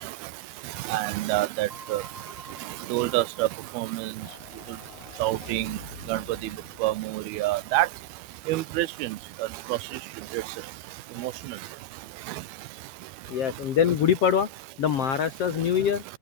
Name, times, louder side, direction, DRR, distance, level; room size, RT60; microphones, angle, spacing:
voice 1, 0.9-2.0 2.9-3.5 3.8-4.1 5.2-5.8 6.1-6.2 6.8-7.9 8.5-9.1 10.3-10.4 11.2-11.3, right 17 dB, 90° right, 2.8 m, -26 dB
sound 1, 1.7-4.3, right 1 dB, 20° right, 8.1 m, -48 dB
sound 2, 4.2-8.6, left 7 dB, 85° left, 5.6 m, -48 dB
voice 2, 13.2-14.5 14.8-16.0, left 8 dB, 60° left, 1.6 m, -24 dB
omnidirectional pair, 4.3 m